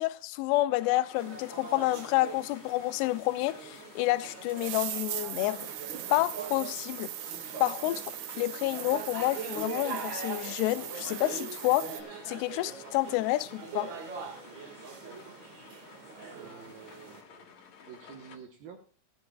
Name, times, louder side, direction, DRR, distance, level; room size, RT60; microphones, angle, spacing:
voice 1, 0.0-5.6 6.1-7.1 7.6-12.0 12.3-13.9, left 17 dB, 80° left, 2.5 m, -29 dB
sound 1, 0.7-18.4, left 6 dB, 55° left, 3.4 m, -53 dB
sound 2, 1.1-17.2, right 4 dB, 45° right, 1.5 m, -43 dB
sound 3, 3.8-3.9 4.5-12.0, right 14 dB, 85° right, 3.3 m, -40 dB
voice 2, 16.2-17.5 17.8-18.8, right 7 dB, 65° right, 2.6 m, -49 dB
16.5 x 13.0 x 2.4 m
omnidirectional pair, 5.2 m